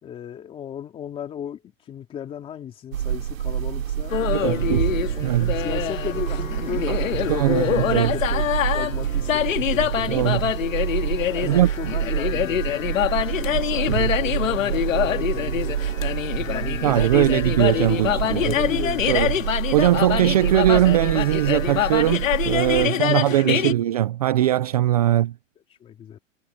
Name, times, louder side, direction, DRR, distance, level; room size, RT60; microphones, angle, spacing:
voice 1, 0.0-1.6 1.9-5.1 5.6-8.4 8.7-10.4 11.3-15.8 16.3-17.5 17.9-19.4 22.9-23.8 25.1-25.2 25.8-26.2, left 9 dB, 15° left, 3.2 m, -35 dB
sound 1, 2.9-22.9, right 10 dB, 90° right, 2.8 m, -27 dB
sound 2, 4.1-23.7, left 11 dB, 80° left, 2.0 m, -25 dB
voice 2, 5.2-5.6 7.3-8.1 10.0-10.5 11.5-11.7 16.8-18.5 19.1-25.3, right 13 dB, 30° right, 0.5 m, -20 dB
hypercardioid pair, 170°, 39 cm